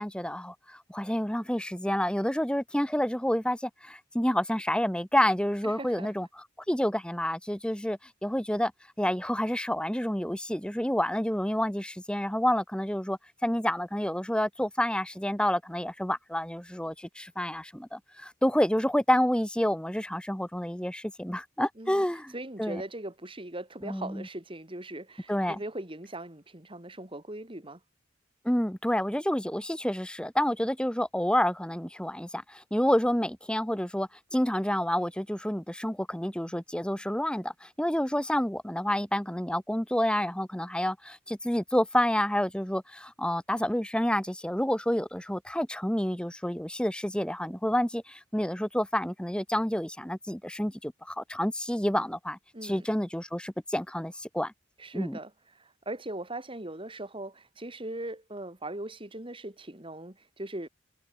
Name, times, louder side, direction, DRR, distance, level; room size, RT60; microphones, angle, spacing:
voice 1, 0.0-8.7 9.0-22.3 22.6-22.8 23.8-24.3 25.3-25.6 28.4-54.5 54.9-55.2, left 1 dB, 5° left, 1.4 m, -29 dB
voice 2, 5.6-6.1 21.8-22.0 22.3-27.8 52.5-52.9 54.8-55.3 55.6-60.7, right 1 dB, 25° right, 3.2 m, -39 dB
head